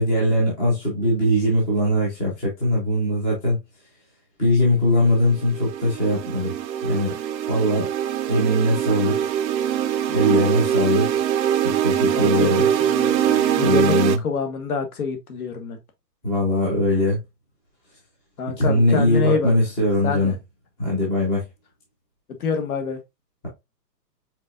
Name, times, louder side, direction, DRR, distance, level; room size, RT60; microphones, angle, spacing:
voice 1, 0.0-3.6 4.4-6.5 6.8-7.1 7.5-7.9 8.3-9.1 10.1-11.2 11.6-12.7 13.6-14.2 16.2-17.2 18.6-20.4 20.8-21.4, left 1 dB, 5° left, 0.6 m, -21 dB
sound 1, 5.1-14.2, right 10 dB, 90° right, 0.8 m, -23 dB
voice 2, 10.1-10.4 12.1-15.8 18.4-19.5 20.0-20.3 22.4-23.0, left 5 dB, 60° left, 1.5 m, -27 dB
5.3 x 3.9 x 2.4 m
hypercardioid pair, 165°, 49 cm